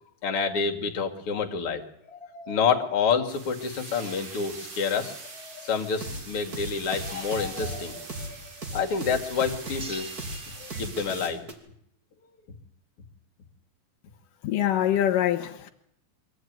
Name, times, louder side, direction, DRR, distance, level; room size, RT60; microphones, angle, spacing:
voice 1, 0.2-8.4 8.7-10.1 10.6-11.5, left 6 dB, 45° left, 2.9 m, -28 dB
sound 1, 3.3-11.3, right 4 dB, 55° right, 4.4 m, -43 dB
sound 2, 5.9-11.5, right 1 dB, 30° right, 3.4 m, -37 dB
voice 2, 14.4-15.7, left 11 dB, 85° left, 2.9 m, -24 dB
24.5 x 15.0 x 9.5 m
omnidirectional pair, 3.7 m